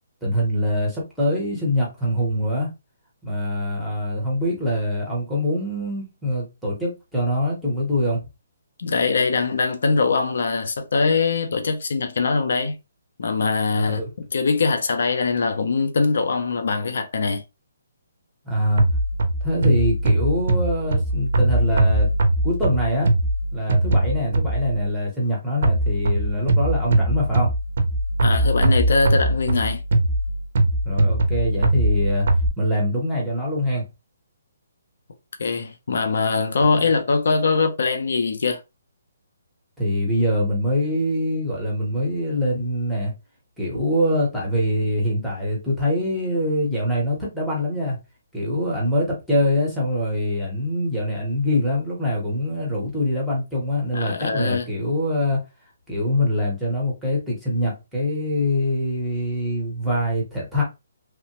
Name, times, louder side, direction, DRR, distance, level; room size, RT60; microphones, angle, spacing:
voice 1, 0.2-2.7 3.2-8.2 13.7-14.1 18.4-18.9 19.4-22.1 22.4-23.1 23.5-27.5 30.8-32.3 32.6-33.9 36.6-36.7 39.8-43.1 43.6-48.0 48.3-55.4 55.9-60.6, left 1 dB, ahead, 0.7 m, -24 dB
voice 2, 8.8-12.8 13.2-14.0 14.3-17.4 28.2-29.8 35.4-38.6 53.9-54.7, left 4 dB, 55° left, 0.4 m, -22 dB
sound 1, 18.8-24.8 25.6-32.5, right 1 dB, 50° right, 0.5 m, -21 dB
2.9 x 2.1 x 2.8 m
hypercardioid pair, 180°, 0 cm